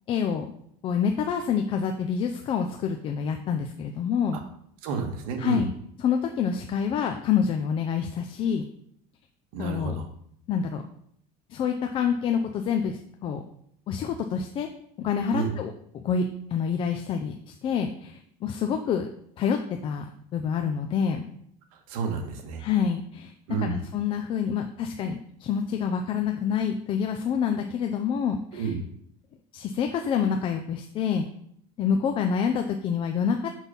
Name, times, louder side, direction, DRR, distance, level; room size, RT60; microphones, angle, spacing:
voice 1, 0.1-0.5 0.8-4.4 5.4-5.7 6.0-8.6 9.6-9.9 10.5-10.8 11.5-13.4 13.9-14.7 15.0-16.2 16.5-19.1 19.4-21.2 22.6-28.7 29.5-31.3 31.8-33.5, left 7 dB, 30° left, 5 dB, 0.5 m, -27 dB
voice 2, 4.8-5.6 9.5-10.1 15.3-15.5 21.7-22.6 23.5-23.8 28.5-28.8, right 5 dB, 80° right, 4 dB, 1.6 m, -30 dB
6.3 x 5.6 x 5.4 m, 0.69 s
cardioid pair, 160°, 18 cm